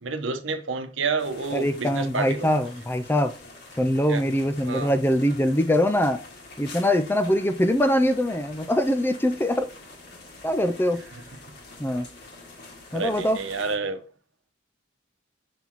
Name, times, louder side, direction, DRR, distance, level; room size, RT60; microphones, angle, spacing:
voice 1, 0.0-2.5 4.1-4.2 4.6-4.9 12.9-14.0, right 4 dB, 70° right, 1.0 m, -29 dB
sound 1, 1.2-13.8, left 2 dB, 55° left, 2.0 m, -46 dB
voice 2, 1.5-3.3 3.8-6.2 6.6-9.7 10.4-11.0 11.8-12.1 12.9-13.4, equal, 10° left, 0.4 m, -23 dB
7.1 x 5.9 x 3.0 m
head